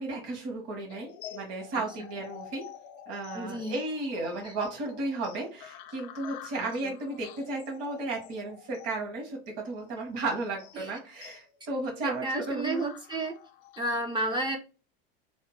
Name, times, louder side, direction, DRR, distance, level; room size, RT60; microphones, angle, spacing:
voice 1, 0.0-2.6 3.1-12.8, right 2 dB, 50° right, 0 dB, 1.3 m, -34 dB
sound 1, 0.9-13.9, left 11 dB, 65° left, 0.5 m, -49 dB
voice 2, 3.3-3.8 4.4-4.5 6.6-6.7 10.8-11.0 12.0-13.4 13.8-14.6, right 2 dB, 15° right, 2 dB, 0.4 m, -32 dB
2.8 x 2.1 x 3.1 m, 0.32 s
supercardioid pair, 110°, 31 cm